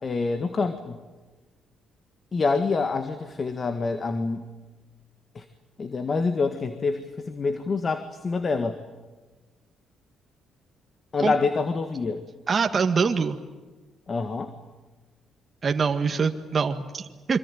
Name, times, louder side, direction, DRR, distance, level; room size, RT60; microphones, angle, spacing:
voice 1, 0.0-1.0 2.3-4.5 5.4-5.5 5.8-8.8 11.1-12.2 14.1-14.5, left 4 dB, 40° left, 8 dB, 1.8 m, -26 dB
voice 2, 12.5-13.4 15.6-17.4, right 5 dB, 40° right, 5 dB, 1.8 m, -24 dB
26.5 x 24.5 x 9.2 m, 1.3 s
cardioid pair, 90°, 0 cm